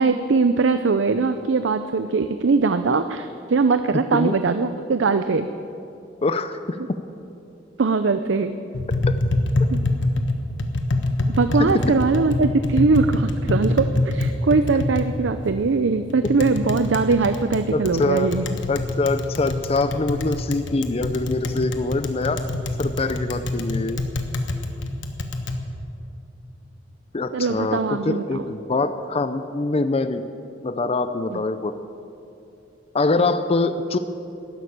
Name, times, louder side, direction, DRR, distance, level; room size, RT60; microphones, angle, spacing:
voice 1, 0.0-5.5 7.8-8.5 9.7-9.8 11.4-18.4 27.3-28.5 31.3-31.4, right 4 dB, 85° right, 10 dB, 0.5 m, -21 dB
voice 2, 6.2-7.0 11.6-11.7 17.7-18.3 18.7-22.4 22.8-24.0 27.1-30.2 30.6-31.7 32.9-34.0, left 3 dB, 35° left, 10 dB, 0.5 m, -24 dB
Tap, 8.7-25.6, left 2 dB, 85° left, 1.3 m, -25 dB
13.0 x 11.0 x 8.7 m, 2.8 s
head